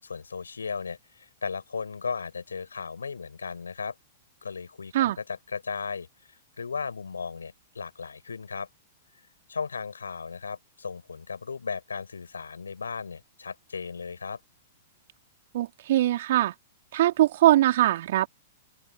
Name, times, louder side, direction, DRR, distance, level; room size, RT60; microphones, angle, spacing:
voice 1, 0.0-3.9 4.4-6.1 6.6-8.7 9.5-14.4, left 5 dB, 75° left, 6.7 m, -36 dB
voice 2, 15.5-16.5 16.9-18.3, right 14 dB, 55° right, 3.2 m, -22 dB
open air
figure-of-eight pair, 105°, 0 cm